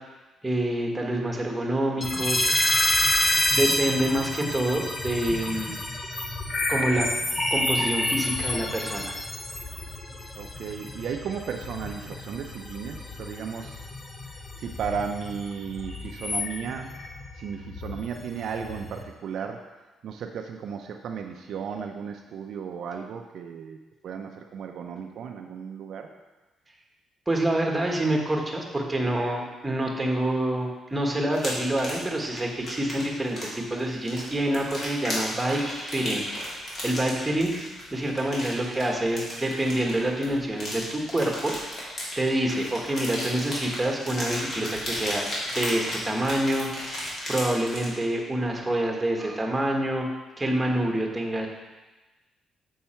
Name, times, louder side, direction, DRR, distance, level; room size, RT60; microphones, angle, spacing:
voice 1, 0.4-2.5 3.5-5.8 6.7-7.1 7.5-9.2 27.3-37.5 37.9-41.5 42.2-45.3 45.5-46.7 47.3-50.1 50.4-51.5, right 1 dB, 15° right, 1 dB, 1.3 m, -27 dB
sound 1, 2.0-19.0, left 1 dB, 35° left, 1.0 m, -29 dB
voice 2, 10.3-13.8 14.6-16.9 17.4-19.6 20.0-23.8 24.0-26.1, right 6 dB, 70° right, 4 dB, 0.5 m, -35 dB
sound 2, 31.3-48.0, left 1 dB, 50° left, 2.7 m, -35 dB
6.9 x 5.5 x 4.4 m, 1.2 s
cardioid pair, 90°, 0 cm